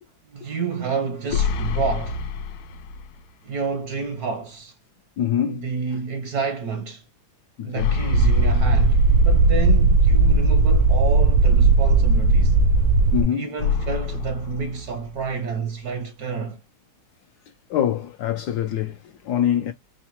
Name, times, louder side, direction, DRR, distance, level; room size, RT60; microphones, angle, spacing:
voice 1, 0.3-2.2 3.4-4.8 5.4-7.0 7.6-12.6 13.3-16.6, right 5 dB, 70° right, 0.9 m, -29 dB
sound 1, 1.3-3.3 3.7-3.8 7.8-9.8 13.6-15.6, left 6 dB, 90° left, 1.4 m, -28 dB
voice 2, 5.2-5.6 7.6-7.9 13.1-13.5 17.7-19.7, left 10 dB, 75° left, 0.9 m, -24 dB
sound 2, 8.1-13.2, right 3 dB, 85° right, 1.4 m, -16 dB
4.8 x 2.1 x 2.9 m
omnidirectional pair, 2.1 m